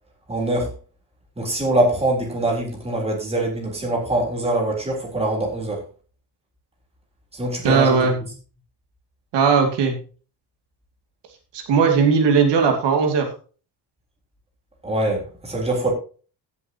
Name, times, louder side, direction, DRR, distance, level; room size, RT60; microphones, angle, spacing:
voice 1, 0.3-0.7 1.4-5.8 7.3-8.1 14.8-15.9, right 1 dB, 15° right, -1 dB, 3.8 m, -23 dB
voice 2, 7.6-8.1 9.3-9.9 11.5-13.3, right 5 dB, 80° right, 3 dB, 2.7 m, -18 dB
15.5 x 8.4 x 3.0 m, 0.37 s
cardioid pair, 170°, 41 cm